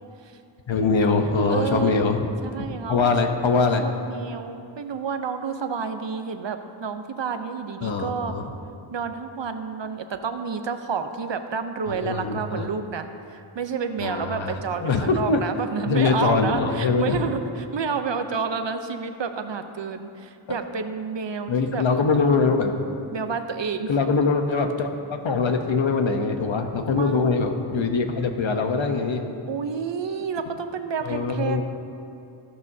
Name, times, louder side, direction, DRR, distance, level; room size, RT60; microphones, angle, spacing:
voice 1, 0.7-2.3 2.9-3.8 7.8-8.5 11.9-12.7 14.0-14.5 14.8-15.4 15.9-17.2 21.5-22.7 23.9-29.2 31.0-31.6, left 4 dB, 70° left, 5 dB, 0.9 m, -23 dB
voice 2, 1.5-2.0 2.4-3.1 3.8-8.3 8.9-21.8 23.1-23.9 26.9-27.4 29.5-31.6, right 5 dB, 60° right, 8 dB, 0.8 m, -30 dB
14.0 x 11.5 x 2.7 m, 2.6 s
wide cardioid pair, 60°, 48 cm